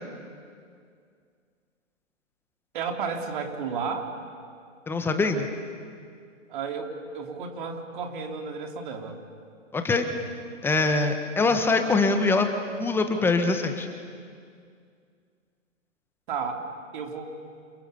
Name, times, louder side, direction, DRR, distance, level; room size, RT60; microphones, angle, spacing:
voice 1, 2.7-4.1 6.5-9.2 16.3-16.7 16.9-17.4, right 5 dB, 40° right, 3 dB, 3.6 m, -32 dB
voice 2, 4.9-5.5 9.7-10.1 10.6-12.5 12.8-13.9, left 3 dB, 5° left, 6 dB, 1.3 m, -23 dB
29.0 x 28.0 x 7.1 m, 2.2 s
hypercardioid pair, 140°, 38 cm